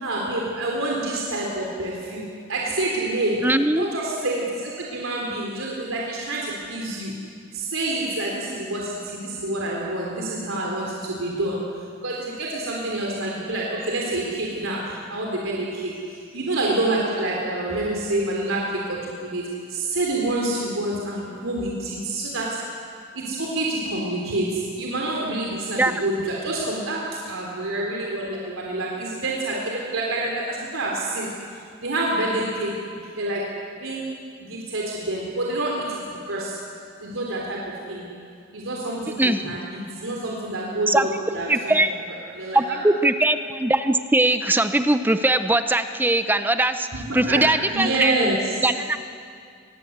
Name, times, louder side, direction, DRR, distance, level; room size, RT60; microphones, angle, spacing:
voice 1, 0.0-7.2 7.5-22.8 23.1-34.1 34.4-38.1 38.5-41.8 42.3-42.8 46.9-48.8, right 2 dB, 90° right, -2 dB, 3.6 m, -27 dB
voice 2, 3.4-3.9 25.8-26.0 39.2-39.4 40.9-41.1 41.5-41.9 42.5-46.9 47.1-48.3 48.6-49.0, right 2 dB, 10° right, 9 dB, 0.6 m, -20 dB
25.5 x 21.0 x 8.0 m, 2.3 s
head